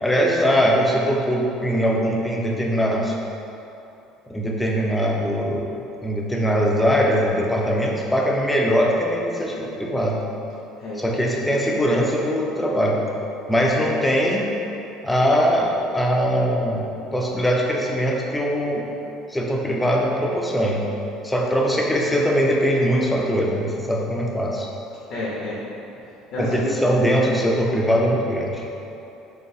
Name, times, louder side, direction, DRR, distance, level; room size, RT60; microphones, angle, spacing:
voice 1, 0.0-3.1 4.3-10.2 11.0-13.0 13.5-14.5 15.0-18.9 19.3-20.8 21.2-24.7 26.4-28.6, equal, 5° left, -2 dB, 0.4 m, -21 dB
voice 2, 25.1-25.6 26.3-26.7, left 2 dB, 60° left, -7 dB, 0.7 m, -29 dB
3.8 x 3.8 x 2.7 m, 2.9 s
cardioid pair, 155°, 0 cm